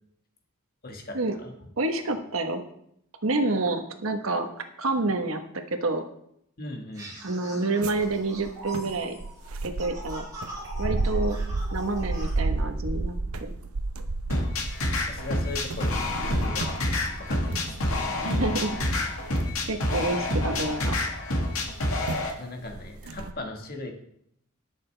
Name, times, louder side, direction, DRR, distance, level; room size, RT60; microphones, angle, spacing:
voice 1, 0.8-1.5 6.6-7.2 15.0-16.8 17.2-18.1 22.3-23.9, left 2 dB, 45° left, 3 dB, 1.6 m, -38 dB
voice 2, 1.8-2.6 3.2-4.5 4.8-5.4 5.7-6.0 7.2-9.2 9.6-10.3 10.8-11.4 11.7-13.2 13.4-13.5 18.2-18.8 19.7-21.0, right 2 dB, 75° right, 6 dB, 1.2 m, -28 dB
sound 1, 6.9-12.3, right 1 dB, 15° right, 4.8 m, -42 dB
sound 2, 7.8-21.0 21.7-21.8 22.1-22.3 22.7-23.3, right 3 dB, 90° right, 0.8 m, -32 dB
sound 3, 14.3-22.3, left 1 dB, 90° left, 1.9 m, -27 dB
20.0 x 6.6 x 3.4 m, 0.72 s
head